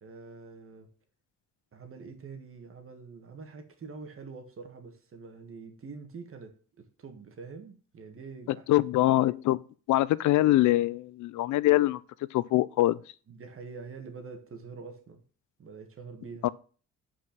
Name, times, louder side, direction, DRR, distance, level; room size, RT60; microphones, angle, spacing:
voice 1, 0.0-0.9 1.7-8.7 13.3-15.2 15.6-16.5, right 4 dB, 45° right, 1.7 m, -45 dB
voice 2, 8.5-9.6 9.9-12.0 12.3-13.0 16.4-16.5, left 16 dB, 75° left, 0.5 m, -24 dB
5.9 x 4.8 x 5.9 m
cardioid pair, 90°, 30 cm